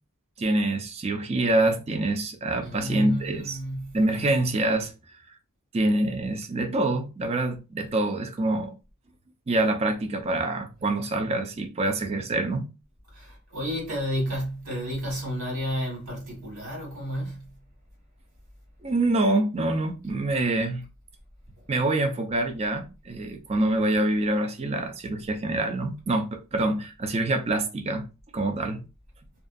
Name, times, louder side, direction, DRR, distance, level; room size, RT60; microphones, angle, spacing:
voice 1, 0.4-3.6 3.9-4.9 5.7-8.7 9.5-12.7 18.8-20.8 21.7-28.1 28.3-28.9, right 2 dB, 30° right, 0.4 m, -26 dB
voice 2, 2.6-4.0 13.1-17.6, equal, 80° right, 1.5 m, -31 dB
2.6 x 2.3 x 2.4 m
head